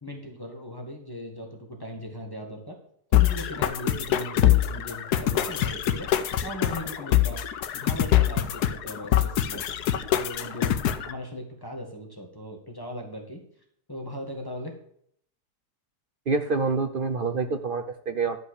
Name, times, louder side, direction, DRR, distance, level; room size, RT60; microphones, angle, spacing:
voice 1, 0.0-2.8 3.1-6.1 6.4-7.4 7.7-9.8 10.1-10.8 11.0-13.4 13.9-14.7, left 1 dB, 15° left, 0 dB, 1.8 m, -38 dB
sound 1, 3.1-11.1, left 11 dB, 85° left, 1.3 m, -24 dB
voice 2, 16.3-18.4, right 4 dB, 50° right, 7 dB, 0.6 m, -27 dB
12.0 x 5.5 x 6.5 m, 0.66 s
omnidirectional pair, 1.7 m